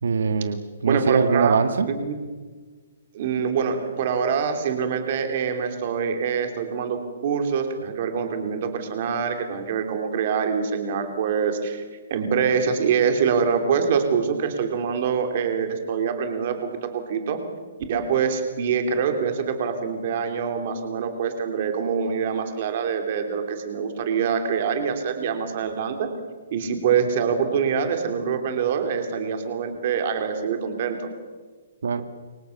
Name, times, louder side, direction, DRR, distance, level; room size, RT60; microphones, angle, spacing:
voice 1, 0.0-1.9 31.8-32.0, right 5 dB, 80° right, 9 dB, 2.1 m, -22 dB
voice 2, 0.8-1.6 1.9-2.3 3.1-11.8 12.1-17.4 17.9-26.1 26.5-31.1, right 6 dB, 30° right, 6 dB, 3.3 m, -25 dB
29.0 x 24.5 x 7.3 m, 1.4 s
hypercardioid pair, 180°, 0 cm